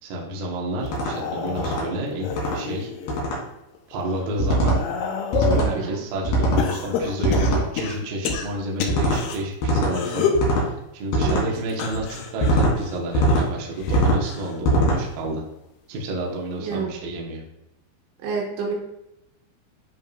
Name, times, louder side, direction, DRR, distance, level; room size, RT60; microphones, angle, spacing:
voice 1, 0.0-2.9 3.9-4.8 5.3-15.4 15.9-17.4, right 1 dB, 65° right, -2 dB, 2.5 m, -30 dB
sound 1, 0.8-1.1 1.6-1.8 2.3-2.6 3.1-3.4 4.4-4.8 5.3-5.7 6.2-6.7 7.2-7.6 8.9-9.2 9.6-9.9 10.3-10.7 11.1-11.5 12.4-12.7 13.1-13.5 13.9-14.2 14.6-15.0, right 1 dB, 65° left, 3.3 m, -21 dB
sound 2, 0.9-3.2 3.7-5.7 6.6-9.4 9.9-10.5 11.7-14.6 14.9-15.4 16.5-16.6, left 6 dB, 80° left, 2.4 m, -29 dB
voice 2, 5.6-6.0 11.2-11.4 16.6-16.9 18.2-18.7, right 5 dB, 85° right, -2 dB, 3.9 m, -29 dB
10.5 x 4.6 x 2.4 m, 0.89 s
omnidirectional pair, 5.3 m